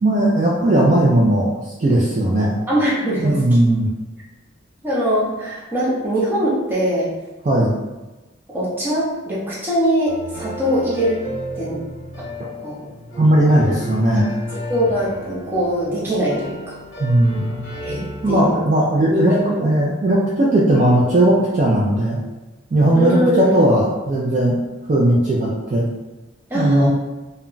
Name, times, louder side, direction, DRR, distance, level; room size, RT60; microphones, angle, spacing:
voice 1, 0.0-2.5 3.2-3.9 7.4-7.7 13.2-14.4 17.0-17.4 18.2-19.3 19.6-22.2 22.7-24.6 24.9-25.9 26.5-26.9, right 1 dB, 35° right, -5 dB, 0.4 m, -17 dB
voice 2, 2.7-3.4 4.8-7.1 8.5-11.2 11.5-11.8 12.6-12.9 14.7-16.8 17.8-18.6 19.1-19.7 22.9-23.5 26.5-26.9, equal, 10° right, -8 dB, 0.7 m, -21 dB
sound 1, 10.1-18.4, left 1 dB, 75° left, 0.8 m, -33 dB
2.2 x 2.1 x 3.7 m, 1.1 s
head